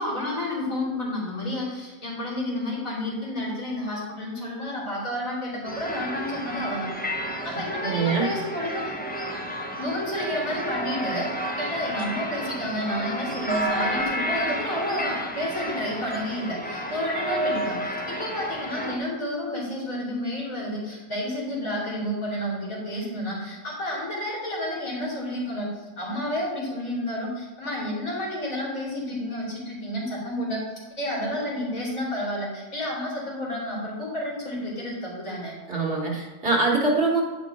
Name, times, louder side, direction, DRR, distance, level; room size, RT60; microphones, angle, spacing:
voice 1, 0.0-6.9 7.4-8.9 9.8-25.7 26.0-30.6 31.0-35.6, left 1 dB, 80° left, -6 dB, 3.4 m, -30 dB
sound 1, 5.6-19.0, equal, 10° left, 0.6 m, -31 dB
voice 2, 7.8-8.3 35.7-37.2, right 3 dB, 45° right, -2 dB, 1.4 m, -23 dB
9.6 x 5.2 x 4.1 m, 1.3 s
omnidirectional pair, 1.4 m